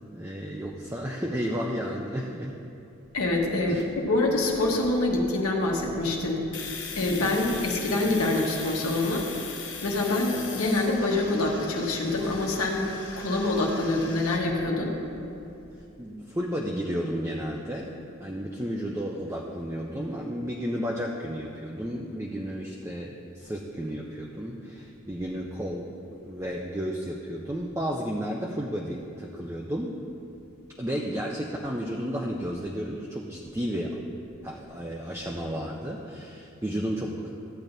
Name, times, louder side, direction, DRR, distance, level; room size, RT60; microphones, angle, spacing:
voice 1, 0.1-2.6 3.7-3.8 16.0-17.9 18.2-30.0 30.8-34.0 34.4-37.3, equal, 15° right, -2 dB, 0.4 m, -32 dB
voice 2, 3.1-6.4 6.9-9.3 9.8-12.9 13.2-15.0, left 2 dB, 85° left, -1 dB, 1.2 m, -25 dB
Domestic sounds home sounds, 6.5-14.4, left 5 dB, 55° left, 1.0 m, -40 dB
14.0 x 8.8 x 2.7 m, 2.7 s
head